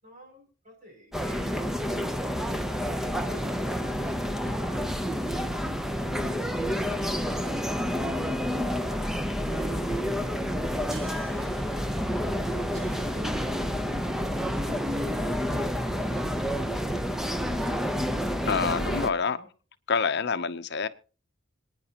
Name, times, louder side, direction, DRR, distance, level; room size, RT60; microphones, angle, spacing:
voice 1, 0.0-2.9 3.1-4.9 5.3-9.1 20.1-20.2, left 1 dB, 40° right, 6.3 m, -51 dB
sound 1, 1.1-19.1, equal, ahead, 0.8 m, -29 dB
sound 2, 7.0-13.9, right 4 dB, 85° right, 7.9 m, -54 dB
voice 2, 18.5-19.4 19.9-20.9, left 5 dB, 60° left, 0.7 m, -27 dB
26.5 x 9.7 x 2.9 m
head